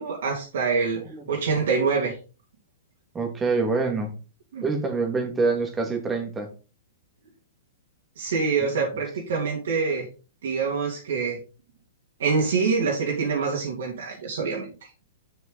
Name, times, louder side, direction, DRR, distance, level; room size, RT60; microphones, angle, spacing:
voice 1, 0.0-1.0 1.3-2.1 4.5-4.6 8.2-10.0 10.4-11.4 12.2-14.7, right 5 dB, 70° right, -2 dB, 3.0 m, -25 dB
voice 2, 0.9-1.3 3.1-4.2 4.6-6.5 8.7-8.9, right 4 dB, 15° right, 4 dB, 2.0 m, -26 dB
7.0 x 6.2 x 4.0 m, 0.34 s
hypercardioid pair, 120°, 0 cm